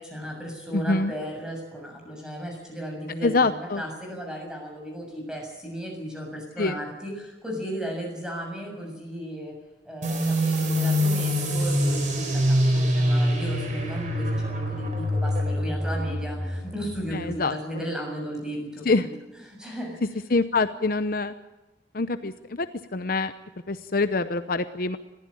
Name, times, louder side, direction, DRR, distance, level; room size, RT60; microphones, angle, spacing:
voice 1, 0.0-9.6 9.9-19.1 19.5-20.0, equal, 5° right, 1 dB, 7.0 m, -35 dB
voice 2, 0.7-1.1 3.2-3.8 6.6-6.8 17.1-17.6 18.8-19.1 20.3-21.3 21.9-22.7 22.9-23.3 23.7-25.0, left 3 dB, 50° left, 11 dB, 0.8 m, -25 dB
sound 1, 10.0-17.3, equal, 40° right, 4.8 m, -25 dB
21.0 x 15.5 x 8.5 m, 1.1 s
head